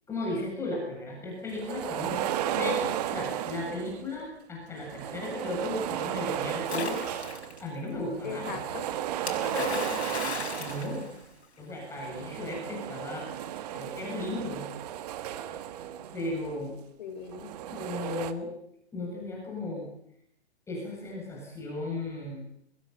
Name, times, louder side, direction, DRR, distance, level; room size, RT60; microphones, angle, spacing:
voice 1, 0.1-7.0 7.6-8.6 10.6-11.1 11.6-13.3 13.7-14.7 16.1-16.8 17.7-18.5 18.9-19.9 20.7-22.4, left 2 dB, 10° left, -2 dB, 7.7 m, -35 dB
sound 1, 1.5-4.1 4.7-7.6 8.0-11.2 11.8-16.6 17.3-18.3, right 11 dB, 35° right, 1.7 m, -34 dB
Splash splatter, 6.7-7.6 9.3-11.7, left 5 dB, 75° left, 6.4 m, -36 dB
voice 2, 8.2-8.9 9.4-10.2 17.0-17.8, left 7 dB, 45° left, 7 dB, 4.7 m, -39 dB
22.5 x 22.0 x 7.1 m, 0.71 s
hypercardioid pair, 145°, 33 cm